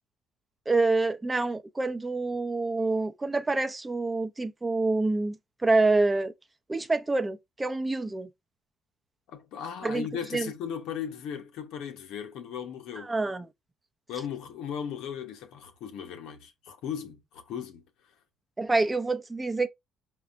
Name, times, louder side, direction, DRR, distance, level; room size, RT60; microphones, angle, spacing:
voice 1, 0.7-6.3 6.7-8.3 9.8-10.1 10.3-10.5 13.0-13.5 18.6-19.7, right 3 dB, 20° right, 0.6 m, -27 dB
voice 2, 9.3-13.1 14.1-17.9, left 8 dB, 70° left, 0.8 m, -37 dB
4.9 x 2.3 x 3.5 m
hypercardioid pair, 60°, 0 cm